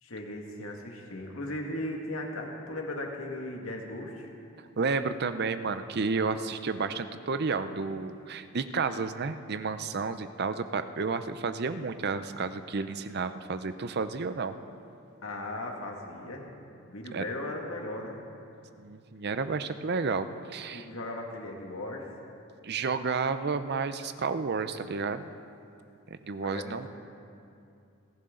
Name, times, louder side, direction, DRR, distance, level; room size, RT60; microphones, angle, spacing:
voice 1, 0.0-4.3 15.2-16.5 16.9-18.2 20.7-22.1 26.4-26.9, left 1 dB, 80° left, 1 dB, 2.1 m, -37 dB
voice 2, 4.8-14.5 17.1-17.3 18.8-20.9 22.6-25.3 26.2-26.9, right 4 dB, 50° right, 11 dB, 0.6 m, -31 dB
29.5 x 11.0 x 3.8 m, 2.5 s
head